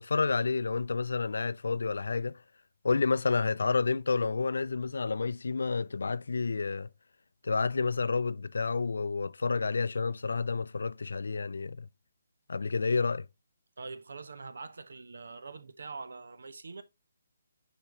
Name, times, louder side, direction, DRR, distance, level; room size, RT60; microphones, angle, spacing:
voice 1, 0.0-2.4 2.8-6.9 7.4-11.9 12.5-13.3, left 4 dB, 75° left, 0.4 m, -30 dB
voice 2, 13.8-16.8, right 4 dB, 75° right, 1.1 m, -44 dB
9.0 x 4.3 x 3.1 m
hypercardioid pair, 160°, 0 cm